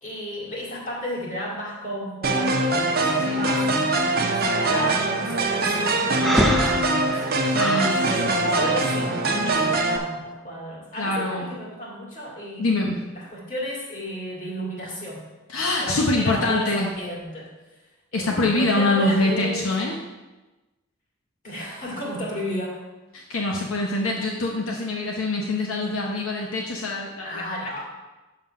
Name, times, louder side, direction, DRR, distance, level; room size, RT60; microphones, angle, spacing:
voice 1, 0.0-3.7 4.2-12.9 13.1-15.3 15.8-17.5 18.1-19.7 21.4-22.8 27.2-27.8, equal, 40° left, -4 dB, 2.3 m, -33 dB
sound 1, 2.2-10.0, right 2 dB, 50° right, 0.8 m, -23 dB
Breathing, 6.2-8.0, equal, ahead, 0.6 m, -24 dB
voice 2, 7.4-8.7 10.9-11.5 12.6-13.1 15.5-16.9 18.1-20.0 23.1-27.4, left 2 dB, 80° left, 0 dB, 0.8 m, -25 dB
6.7 x 5.6 x 5.8 m, 1.1 s
head